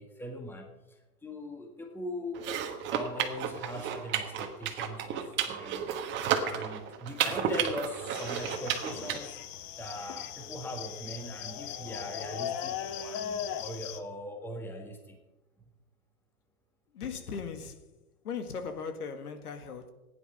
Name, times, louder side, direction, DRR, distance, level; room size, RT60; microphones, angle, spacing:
voice 1, 0.0-2.5 2.9-5.9 6.4-9.4 9.8-15.2, left 1 dB, 5° left, 1.6 m, -40 dB
sound 1, 2.3-9.2, right 8 dB, 25° right, 1.3 m, -32 dB
sound 2, 8.1-14.0, left 9 dB, 25° left, 0.7 m, -38 dB
voice 2, 16.9-17.8 18.2-19.9, left 5 dB, 80° left, 2.0 m, -38 dB
15.0 x 10.0 x 5.7 m
hypercardioid pair, 140°, 45 cm